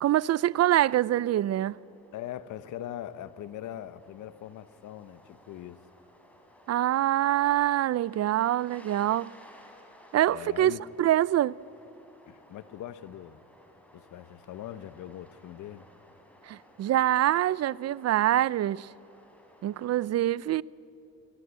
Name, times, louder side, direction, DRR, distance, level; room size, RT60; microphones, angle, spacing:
voice 1, 0.0-1.8 6.7-9.3 10.1-10.7 11.0-11.6 16.5-18.9 19.6-20.6, right 13 dB, 55° right, 0.5 m, -25 dB
sound 1, 1.6-20.1, equal, 5° left, 4.3 m, -57 dB
voice 2, 2.1-5.8 10.3-10.8 12.3-13.4 13.9-15.9, left 11 dB, 80° left, 1.0 m, -41 dB
23.5 x 20.5 x 8.2 m
cardioid pair, 90°, 30 cm